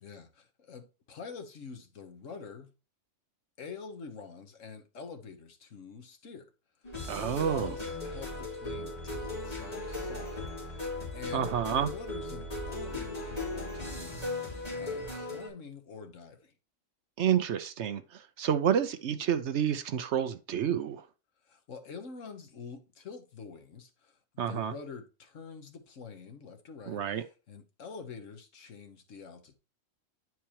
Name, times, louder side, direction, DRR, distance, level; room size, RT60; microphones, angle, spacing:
voice 1, 0.0-2.7 3.6-6.5 7.2-10.9 11.1-16.5 21.4-29.5, left 5 dB, 70° left, 1.6 m, -46 dB
sound 1, 6.8-15.5, left 2 dB, 30° left, 3.3 m, -37 dB
voice 2, 7.1-7.8 11.3-11.9 17.2-21.0 24.4-24.7 26.9-27.2, right 9 dB, 65° right, 0.9 m, -29 dB
10.0 x 4.7 x 3.0 m
omnidirectional pair, 1.4 m